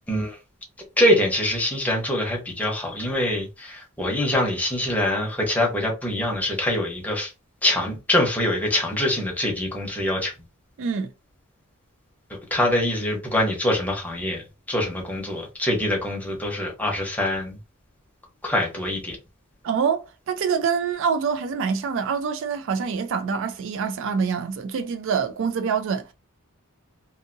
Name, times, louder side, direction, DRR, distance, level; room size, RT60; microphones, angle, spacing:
voice 1, 0.1-0.4 1.0-7.3 7.6-10.3 12.3-17.6 18.4-19.2, left 1 dB, 5° left, 0.9 m, -24 dB
voice 2, 10.8-11.1 19.6-26.1, right 6 dB, 65° right, 0.4 m, -25 dB
2.7 x 2.6 x 2.6 m
head